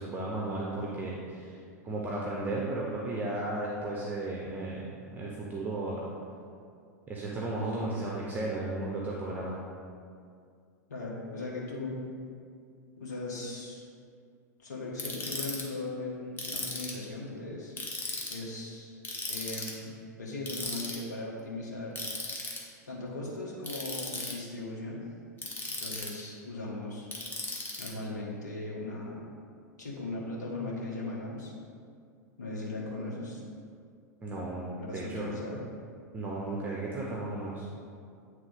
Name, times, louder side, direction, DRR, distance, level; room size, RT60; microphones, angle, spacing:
voice 1, 0.0-1.6 1.8-6.0 7.1-9.6 34.2-35.5 36.1-37.7, right 2 dB, 20° right, -3 dB, 0.8 m, -34 dB
voice 2, 10.9-12.0 13.0-13.8 14.6-17.8 18.3-19.0 19.2-19.9 20.2-22.0 22.9-25.0 25.8-27.1 27.8-29.2 29.8-31.5 32.4-33.4 34.9-35.6, left 2 dB, 75° left, -4 dB, 1.3 m, -38 dB
Ratchet pawl, 15.0-15.6 16.4-17.0 17.8-18.4 19.0-19.7 20.5-21.0 22.0-22.6 23.6-24.3 25.4-26.2 27.1-27.9, left 2 dB, 20° left, 1.1 m, -36 dB
8.8 x 3.3 x 3.5 m, 2.3 s
figure-of-eight pair, 95°, 9 cm